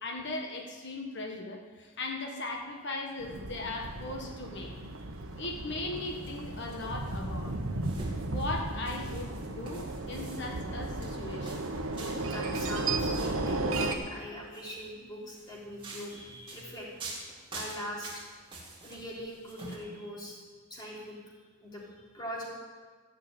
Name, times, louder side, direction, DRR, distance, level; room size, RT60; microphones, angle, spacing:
voice 1, 0.0-4.7 5.4-7.6 8.2-11.6, left 2 dB, 55° left, 2 dB, 1.3 m, -38 dB
sound 1, 3.2-14.0, right 2 dB, 70° right, 1.2 m, -34 dB
sound 2, 6.0-13.5 14.3-14.7 15.3-19.8, right 2 dB, 25° right, 2.4 m, -47 dB
voice 2, 12.2-16.9 17.5-18.2 18.8-20.4 20.7-21.1 21.6-22.4, equal, 20° left, -5 dB, 3.5 m, -42 dB
14.0 x 6.7 x 8.8 m, 1.5 s
head